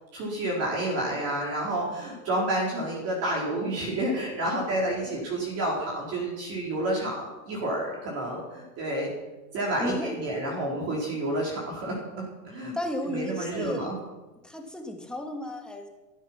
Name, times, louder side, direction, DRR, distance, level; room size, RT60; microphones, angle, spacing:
voice 1, 0.1-9.1 9.5-12.8 13.0-14.0, right 1 dB, 30° right, -3 dB, 4.0 m, -30 dB
voice 2, 9.8-10.1 12.7-13.9 14.4-15.9, left 1 dB, ahead, 2 dB, 1.8 m, -33 dB
14.0 x 13.0 x 6.0 m, 1.2 s
hypercardioid pair, 150°, 49 cm